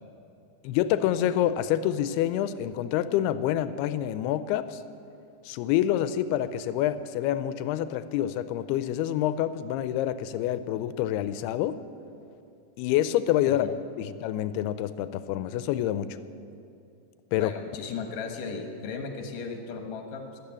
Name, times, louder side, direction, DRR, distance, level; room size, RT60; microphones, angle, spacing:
voice 1, 0.6-4.8 5.4-11.8 12.8-16.2 17.3-17.5, left 11 dB, 85° left, 13 dB, 2.5 m, -27 dB
voice 2, 13.5-13.8 17.4-20.4, left 5 dB, 65° left, 4 dB, 2.6 m, -36 dB
13.0 x 12.5 x 8.7 m, 2.6 s
omnidirectional pair, 4.5 m